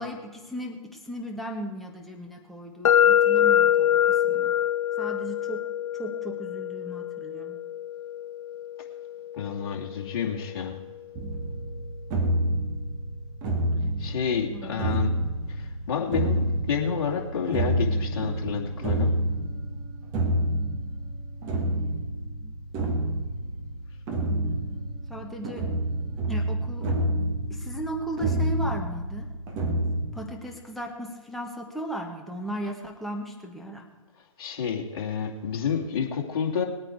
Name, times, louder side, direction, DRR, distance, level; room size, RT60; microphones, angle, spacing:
voice 1, 0.0-4.5 5.0-5.6 5.9-7.5 14.5-14.9 22.4-22.5 25.1-25.7 26.3-26.9 27.5-29.3 30.1-33.8, right 1 dB, ahead, -1 dB, 1.3 m, -36 dB
sound 1, 2.8-10.7, left 10 dB, 70° left, 0.5 m, -25 dB
voice 2, 9.3-10.8 14.0-15.1 15.5-19.1 34.4-36.6, left 6 dB, 45° left, 0 dB, 2.6 m, -29 dB
sound 2, 11.2-30.1, right 1 dB, 25° right, 1.9 m, -28 dB
21.0 x 8.9 x 4.7 m, 1.3 s
hypercardioid pair, 145°, 18 cm